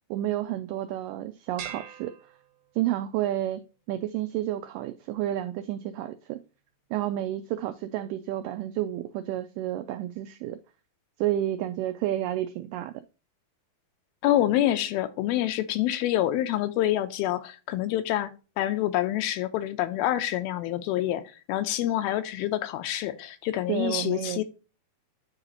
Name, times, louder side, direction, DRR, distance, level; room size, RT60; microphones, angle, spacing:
voice 1, 0.1-2.1 2.8-3.6 3.9-6.4 6.9-10.6 11.2-12.9 23.7-24.4, right 13 dB, 90° right, 1.9 m, -30 dB
sound 1, 1.6-3.1, right 9 dB, 60° right, 2.4 m, -43 dB
voice 2, 14.2-18.3 18.6-21.2 21.5-24.4, left 13 dB, 85° left, 2.5 m, -27 dB
9.8 x 4.0 x 2.9 m
omnidirectional pair, 4.4 m